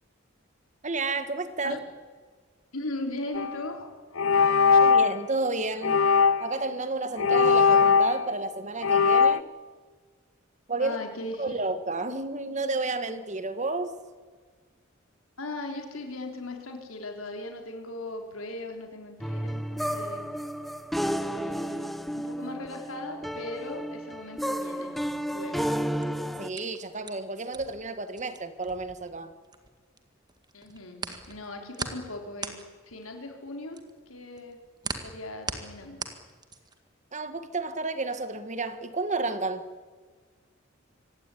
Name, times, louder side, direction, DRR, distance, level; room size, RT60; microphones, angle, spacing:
voice 1, 0.8-1.8 4.8-6.0 6.4-9.4 10.7-11.0 11.4-13.9 26.4-29.3 37.1-39.7, right 3 dB, 35° right, 11 dB, 1.6 m, -31 dB
voice 2, 2.7-3.9 10.8-11.5 15.4-20.3 21.0-25.0 25.3-25.7 30.5-32.5 32.8-33.8 34.1-34.6 34.9-36.0, left 2 dB, 85° left, 3 dB, 4.0 m, -38 dB
sound 1, 3.3-3.6 4.2-5.2 5.8-6.6 7.2-8.4 8.8-9.4, left 5 dB, 70° left, 0.7 m, -20 dB
sound 2, 19.2-26.5, equal, ahead, 0.8 m, -32 dB
sound 3, 26.0-30.0 30.3-36.9, right 4 dB, 20° right, 1.8 m, -39 dB
25.5 x 16.5 x 10.0 m, 1.5 s
head